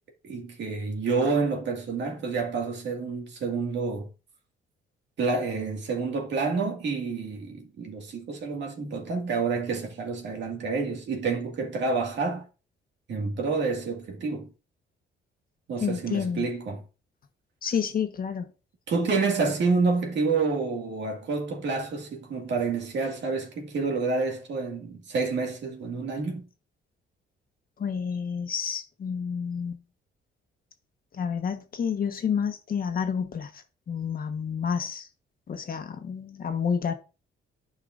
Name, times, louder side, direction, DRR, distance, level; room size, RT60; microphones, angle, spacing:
voice 1, 0.2-4.1 5.2-12.5 13.1-14.5 15.7-16.8 18.9-26.5, right 4 dB, 65° right, 2.0 m, -28 dB
voice 2, 15.8-16.5 17.6-18.5 27.8-29.8 31.1-35.1 35.5-36.9, left 7 dB, 45° left, 1.2 m, -29 dB
11.5 x 4.8 x 2.5 m
cardioid pair, 90°, 20 cm